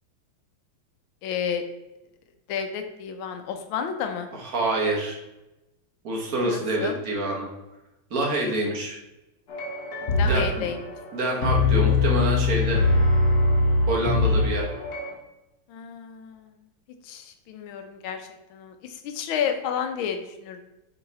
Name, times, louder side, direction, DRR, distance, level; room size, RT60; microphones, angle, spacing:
voice 1, 1.2-1.6 2.5-4.3 6.4-7.0 10.1-10.8 15.7-16.5 17.0-20.6, left 7 dB, 80° left, 6 dB, 1.5 m, -31 dB
voice 2, 4.4-5.2 6.0-7.5 8.1-9.0 10.2-10.7 11.1-12.8 13.9-14.7, right 2 dB, 50° right, -1 dB, 1.5 m, -26 dB
sound 1, 9.5-15.1, left 3 dB, 60° left, 1.5 m, -22 dB
7.0 x 3.8 x 4.0 m, 0.97 s
omnidirectional pair, 2.2 m